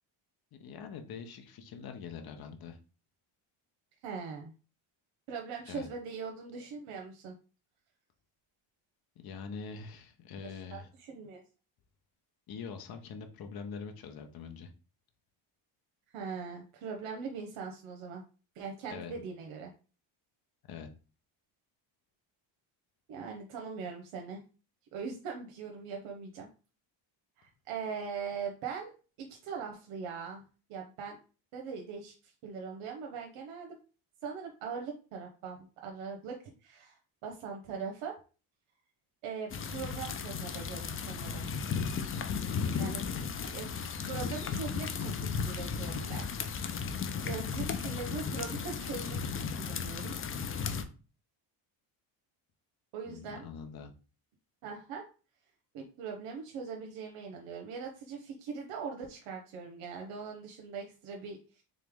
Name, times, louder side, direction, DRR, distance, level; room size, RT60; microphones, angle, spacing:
voice 1, 0.6-2.8 5.7-5.9 9.2-10.9 12.5-14.7 18.9-19.1 20.7-20.9 42.6-43.1 53.1-53.9, left 6 dB, 45° left, 5 dB, 0.8 m, -44 dB
voice 2, 4.0-4.5 5.3-7.4 10.4-11.4 16.1-18.2 18.5-19.7 23.1-24.4 24.9-26.5 27.4-28.9 29.2-30.4 30.7-31.2 31.5-33.8 34.2-38.2 39.2-41.5 42.8-43.0 43.5-43.7 44.1-46.3 47.2-50.1 52.9-53.5 54.6-55.0 55.7-61.6, right 5 dB, 90° right, 1 dB, 0.9 m, -41 dB
sound 1, 39.5-50.8, left 6 dB, 30° left, 0.4 m, -35 dB
3.7 x 3.2 x 3.5 m, 0.35 s
cardioid pair, 120°, 49 cm